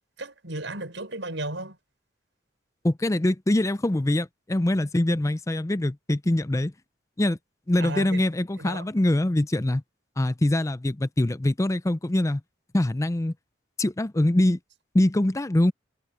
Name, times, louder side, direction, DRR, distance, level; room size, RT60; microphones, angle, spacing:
voice 1, 0.2-1.8 7.8-8.2 8.6-8.9, right 2 dB, 85° right, 5.7 m, -34 dB
voice 2, 2.8-6.7 7.2-7.4 7.7-9.8 10.2-12.4 12.7-13.3 13.8-14.6 14.9-15.7, left 1 dB, 15° left, 0.5 m, -23 dB
head